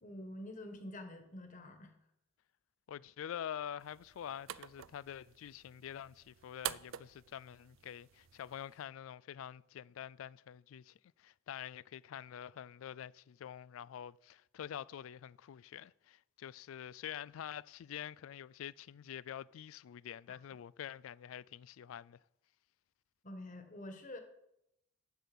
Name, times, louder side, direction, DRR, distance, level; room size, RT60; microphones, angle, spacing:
voice 1, 0.0-1.9 23.2-24.2, left 1 dB, 40° left, 1.5 m, -47 dB
voice 2, 2.9-22.2, left 9 dB, 85° left, 0.3 m, -46 dB
sound 1, 3.8-8.8, right 12 dB, 80° right, 0.4 m, -48 dB
10.5 x 6.9 x 6.1 m
head